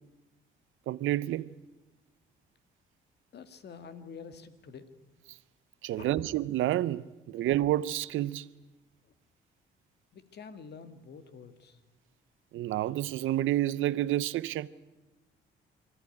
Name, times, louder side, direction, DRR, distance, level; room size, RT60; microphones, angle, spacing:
voice 1, 0.9-1.5 5.8-8.5 12.5-14.7, right 14 dB, 80° right, 0.8 m, -29 dB
voice 2, 3.3-4.9 6.0-6.1 10.1-11.8, left 6 dB, 55° left, 1.9 m, -47 dB
25.0 x 14.5 x 10.0 m
cardioid pair, 90°, 20 cm